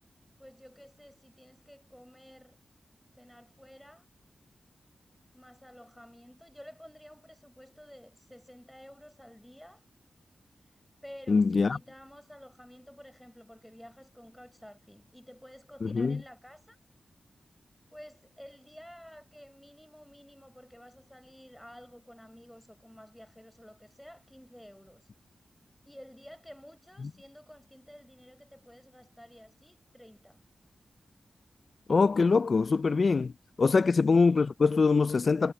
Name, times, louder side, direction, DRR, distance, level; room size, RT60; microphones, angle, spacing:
voice 1, 0.4-2.6 3.1-4.1 5.3-9.8 10.6-10.7 11.0-16.8 17.9-25.1 25.8-30.4 33.9-34.1, equal, 5° left, 4.2 m, -52 dB
voice 2, 11.3-11.8 15.8-16.2 31.9-33.3 33.6-35.5, left 4 dB, 60° left, 0.4 m, -23 dB
cardioid pair, 60°, 0 cm